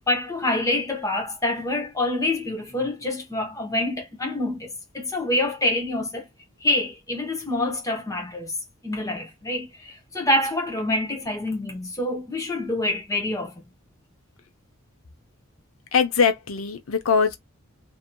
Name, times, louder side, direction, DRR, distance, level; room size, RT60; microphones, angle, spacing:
voice 1, 0.0-6.3 6.6-8.6 8.8-13.6, left 1 dB, 15° left, 0.8 m, -26 dB
voice 2, 15.9-17.4, left 6 dB, 85° left, 0.7 m, -21 dB
2.8 x 2.6 x 2.2 m
head